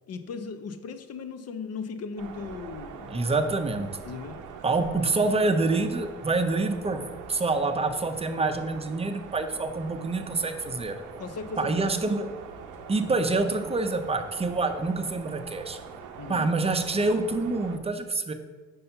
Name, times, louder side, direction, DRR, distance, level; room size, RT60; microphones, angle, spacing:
voice 1, 0.1-3.5 4.0-4.4 5.0-5.4 11.2-11.9 16.2-16.5, left 5 dB, 55° left, 9 dB, 0.7 m, -38 dB
sound 1, 2.2-17.8, right 6 dB, 90° right, 0.7 m, -43 dB
voice 2, 3.1-3.9 4.6-11.0 11.6-12.3 12.9-15.8 16.3-18.3, right 3 dB, 20° right, 7 dB, 0.6 m, -26 dB
5.4 x 4.2 x 5.6 m, 1.3 s
cardioid pair, 90°, 30 cm